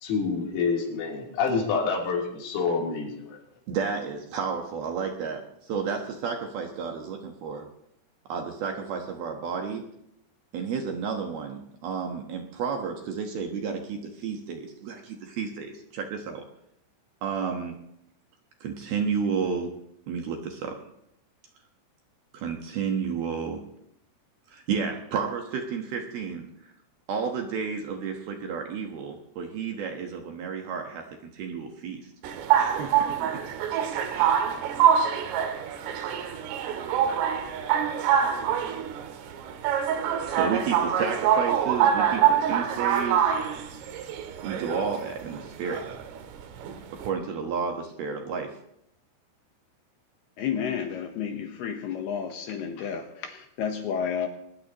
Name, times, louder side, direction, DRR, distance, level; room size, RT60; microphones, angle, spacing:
voice 1, 0.0-3.4, left 5 dB, 85° left, -2 dB, 6.1 m, -27 dB
voice 2, 3.7-7.7 8.3-9.9 10.5-16.4 17.2-17.8 18.6-19.8 20.1-20.8 22.3-23.6 24.5-26.5 27.1-31.1 31.3-32.1 32.6-33.0 34.1-34.4 40.3-43.3 44.4-45.8 46.9-48.6, right 6 dB, 65° right, 3 dB, 2.7 m, -31 dB
sound 1, 32.2-47.1, right 8 dB, 80° right, 4.0 m, -25 dB
voice 3, 50.4-54.3, left 7 dB, 70° left, 5 dB, 2.6 m, -31 dB
22.5 x 19.5 x 3.0 m, 0.78 s
omnidirectional pair, 5.8 m